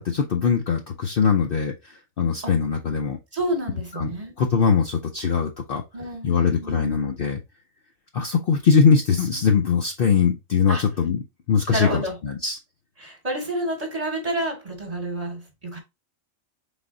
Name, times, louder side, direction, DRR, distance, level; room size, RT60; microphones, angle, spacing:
voice 1, 0.0-3.2 4.0-4.1 4.4-5.8 6.2-7.4 8.1-11.2 11.5-12.0 12.4-12.6, left 6 dB, 55° left, 0.7 m, -21 dB
voice 2, 2.2-2.6 3.3-4.3 5.9-6.9 10.7-10.8 11.7-12.2 13.0-15.8, right 1 dB, 30° right, 1.3 m, -29 dB
4.1 x 3.6 x 3.7 m
omnidirectional pair, 1.3 m